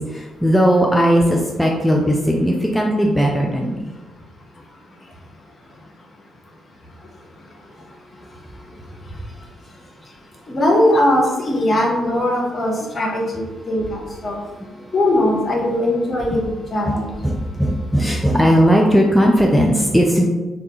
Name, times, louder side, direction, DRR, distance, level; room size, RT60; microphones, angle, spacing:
voice 1, 0.1-3.8 14.8-14.9 16.3-16.4 16.9-20.2, equal, ahead, -1 dB, 0.3 m, -17 dB
voice 2, 10.5-14.4 14.9-16.4 16.7-17.1, left 1 dB, 35° left, -2 dB, 0.7 m, -19 dB
2.3 x 2.2 x 2.8 m, 1.2 s
figure-of-eight pair, 40°, 0 cm